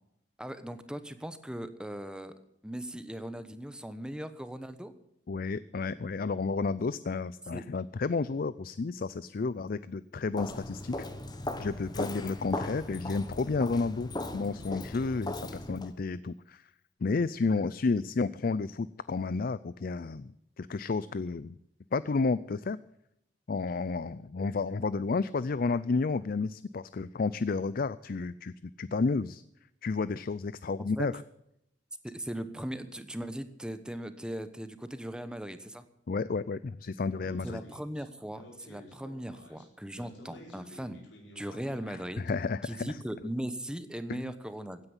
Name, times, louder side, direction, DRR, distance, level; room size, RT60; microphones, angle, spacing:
voice 1, 0.4-2.3 2.6-4.9 7.5-7.6 31.0-31.1 32.0-35.8 37.4-41.0 41.3-42.3 42.6-44.8, right 1 dB, 5° right, 11 dB, 1.0 m, -39 dB
voice 2, 5.3-10.9 11.6-16.6 17.0-21.6 21.9-22.8 23.5-29.4 29.8-31.2 36.1-37.6 42.2-43.0 44.1-44.3, left 4 dB, 50° left, 17 dB, 0.4 m, -31 dB
Walk footsteps, 10.3-15.9, left 1 dB, 20° left, 1.3 m, -38 dB
Speech, 37.2-42.4, left 1 dB, 80° left, 4.8 m, -52 dB
16.0 x 9.7 x 7.2 m, 0.79 s
head